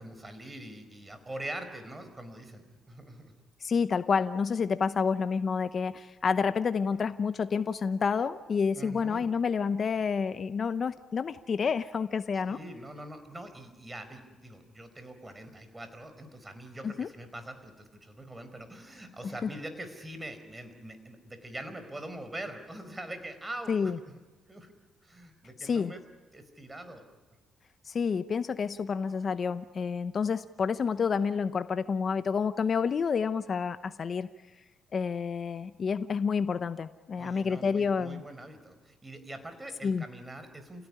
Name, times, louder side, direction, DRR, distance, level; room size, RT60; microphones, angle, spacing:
voice 1, 0.0-3.3 8.7-9.3 12.3-24.2 24.5-24.7 25.0-26.0 26.3-27.0 37.2-40.9, right 1 dB, 15° right, 9 dB, 4.8 m, -43 dB
voice 2, 3.6-12.6 16.8-17.1 19.2-19.5 23.7-24.0 25.6-25.9 27.8-34.3 34.9-38.2 39.8-40.0, left 5 dB, 45° left, 11 dB, 0.8 m, -29 dB
29.0 x 17.0 x 10.0 m, 1.2 s
cardioid pair, 90°, 0 cm